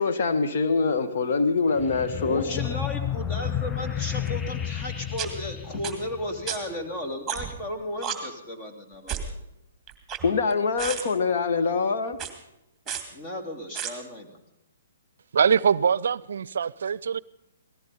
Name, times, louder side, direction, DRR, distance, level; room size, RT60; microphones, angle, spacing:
voice 1, 0.0-2.6 10.2-12.2, left 4 dB, 60° left, 1.3 m, -24 dB
sound 1, 1.8-6.7, left 10 dB, 15° left, 0.5 m, -32 dB
voice 2, 2.2-9.4 13.1-14.3, left 1 dB, 35° left, 3.2 m, -34 dB
sound 2, 4.3-4.4 5.2-5.3 5.8-5.9 6.5-6.6 7.3-7.6 8.0-8.2 9.1-9.3 9.9-10.5 10.8-11.0 12.1-12.3 12.9-13.0 13.8-13.9, right 8 dB, 10° right, 2.6 m, -31 dB
voice 3, 15.3-17.2, right 7 dB, 70° right, 0.5 m, -23 dB
18.5 x 14.5 x 5.5 m
hypercardioid pair, 140°, 0 cm